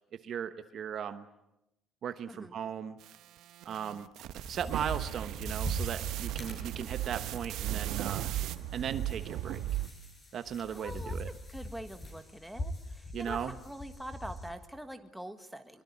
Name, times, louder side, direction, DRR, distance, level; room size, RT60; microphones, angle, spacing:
voice 1, 0.2-1.2 2.0-2.9 3.6-4.1 4.5-8.3 8.7-9.6 10.3-11.3 13.1-13.5, right 8 dB, 40° right, 10 dB, 1.1 m, -37 dB
sound 1, 3.0-8.6, right 13 dB, 60° right, 1.0 m, -44 dB
sound 2, 4.2-14.5, left 1 dB, 20° left, 6.6 m, -43 dB
sound 3, 4.7-9.9, right 14 dB, 80° right, 1.6 m, -36 dB
voice 2, 10.7-11.2 11.5-15.8, right 1 dB, ahead, 7 dB, 1.6 m, -44 dB
23.5 x 23.0 x 9.8 m, 0.89 s
cardioid pair, 175°, 0 cm